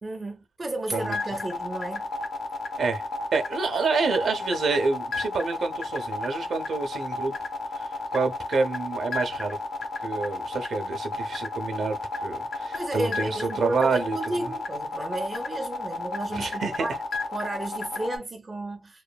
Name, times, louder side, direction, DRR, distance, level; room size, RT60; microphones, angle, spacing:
voice 1, 0.0-2.0 12.7-16.9 17.3-19.0, right 2 dB, 25° right, 0.4 m, -33 dB
sound 1, 0.9-18.2, left 3 dB, 70° left, 0.6 m, -32 dB
voice 2, 3.3-7.3 7.8-9.6 10.0-14.2 14.4-14.5 16.3-16.9, right 4 dB, 75° right, 0.5 m, -28 dB
3.0 x 2.1 x 2.2 m
wide cardioid pair, 140°, 0 cm